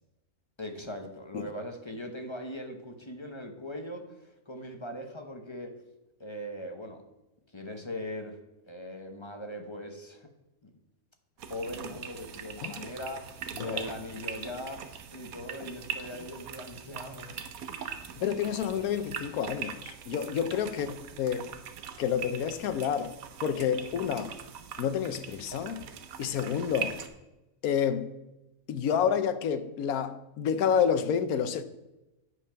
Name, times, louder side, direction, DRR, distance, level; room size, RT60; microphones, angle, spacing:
voice 1, 0.6-5.7 6.2-7.0 7.5-8.4 8.7-10.3 10.6-10.7 11.5-14.8 15.1-17.4 20.6-21.0, left 1 dB, 25° left, 0.8 m, -40 dB
sound 1, 11.4-27.1, right 8 dB, 75° right, 1.2 m, -41 dB
voice 2, 18.2-21.5 22.0-23.1 23.4-24.3 24.8-25.9 26.2-27.0 27.6-28.1 28.7-31.6, left 8 dB, 80° left, 1.2 m, -29 dB
9.5 x 5.5 x 5.7 m
omnidirectional pair, 1.5 m